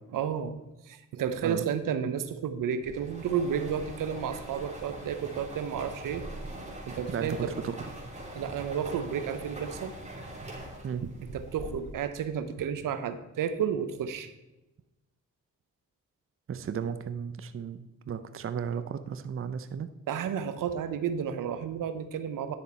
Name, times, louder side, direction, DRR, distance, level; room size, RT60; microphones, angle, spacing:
voice 1, 0.1-0.6 0.8-6.3 6.9-7.5 8.3-10.0 11.3-14.3 20.1-22.5, right 8 dB, 70° right, 10 dB, 0.9 m, -32 dB
sound 1, 2.9-12.2, right 1 dB, 20° right, 3.1 m, -42 dB
voice 2, 16.5-19.9, right 7 dB, 40° right, 11 dB, 0.7 m, -34 dB
10.5 x 6.6 x 4.3 m, 0.99 s
supercardioid pair, 55°, 33 cm